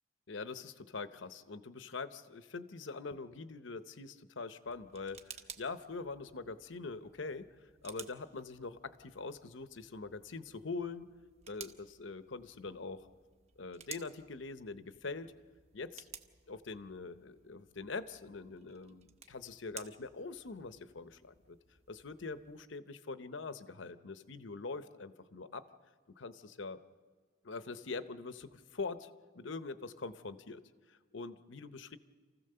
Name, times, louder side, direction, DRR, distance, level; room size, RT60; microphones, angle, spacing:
voice 1, 0.3-11.1 11.5-13.1 13.6-15.3 15.7-16.1 16.5-21.6 21.9-25.6 26.2-26.8 27.4-29.1 29.3-30.6 30.9-32.0, left 4 dB, 70° left, 11 dB, 0.8 m, -43 dB
sound 1, 4.6-22.7, right 6 dB, 35° right, 0.9 m, -55 dB
27.5 x 15.0 x 6.8 m, 1.5 s
head